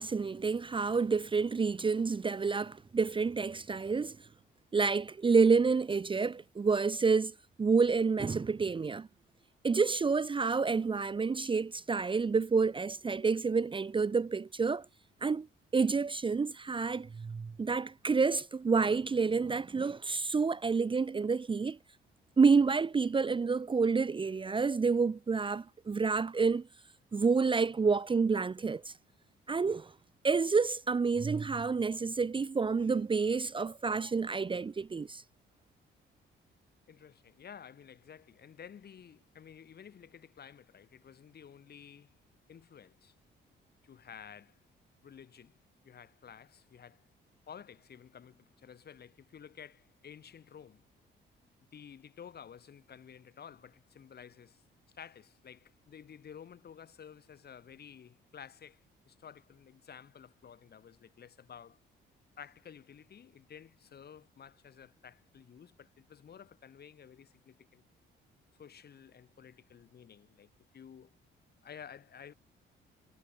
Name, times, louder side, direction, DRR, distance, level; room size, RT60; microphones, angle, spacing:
voice 1, 0.0-4.2 4.7-9.1 9.6-14.9 15.2-15.5 15.7-21.8 22.4-26.7 27.1-28.9 29.5-29.9 30.2-35.2, right 4 dB, 25° right, 0.7 m, -29 dB
voice 2, 36.9-42.2 42.5-43.1 43.8-44.6 45.0-45.6 45.8-47.1 47.5-50.8 51.7-54.6 54.9-61.8 62.4-67.8 68.6-71.1 71.6-72.3, left 8 dB, 55° left, 5.1 m, -52 dB
cardioid pair, 90°, 20 cm